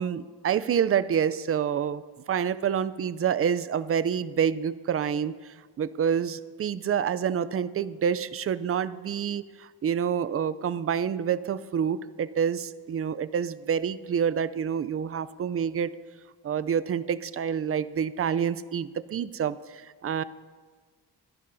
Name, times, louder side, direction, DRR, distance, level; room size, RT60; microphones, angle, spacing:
voice 1, 0.0-2.0 2.3-15.9 16.4-20.2, right 8 dB, 35° right, 16 dB, 0.4 m, -28 dB
25.0 x 11.0 x 2.6 m, 1.5 s
wide cardioid pair, 130°, 42 cm